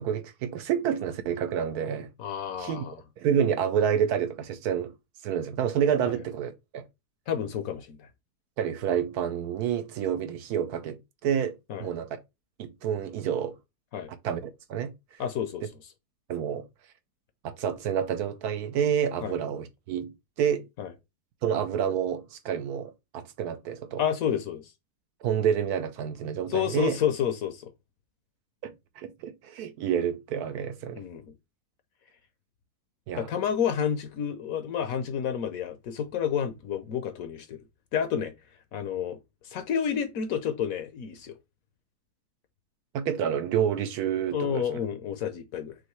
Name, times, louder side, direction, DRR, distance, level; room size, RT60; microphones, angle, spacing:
voice 1, 0.0-2.1 2.6-2.8 3.2-4.9 5.2-6.8 8.6-12.2 12.6-13.6 14.2-14.9 16.3-16.6 17.4-20.7 21.4-24.0 25.2-27.0 28.6-31.0 33.1-33.3 42.9-44.8, right 8 dB, 75° right, 1.1 m, -29 dB
voice 2, 2.2-3.0 7.3-8.1 11.7-11.9 13.9-14.1 15.2-15.6 19.2-19.4 20.8-20.9 24.0-24.7 26.5-27.7 30.9-31.3 33.1-37.6 37.9-38.3 38.7-39.2 39.4-41.3 44.3-45.8, left 8 dB, 65° left, 1.0 m, -30 dB
6.2 x 2.6 x 3.0 m
omnidirectional pair, 1.8 m